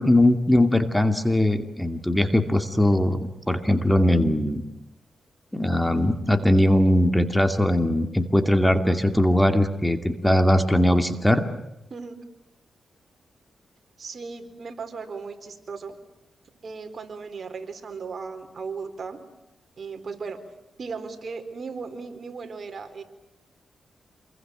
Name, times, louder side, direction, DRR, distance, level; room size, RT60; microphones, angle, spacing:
voice 1, 0.0-4.6 5.5-11.5, left 1 dB, 5° left, 8 dB, 2.5 m, -20 dB
voice 2, 14.0-15.9 16.6-19.2 19.8-20.4 20.8-23.0, right 5 dB, 55° right, 7 dB, 4.3 m, -36 dB
27.5 x 22.5 x 9.1 m, 0.93 s
cardioid pair, 75°, 0 cm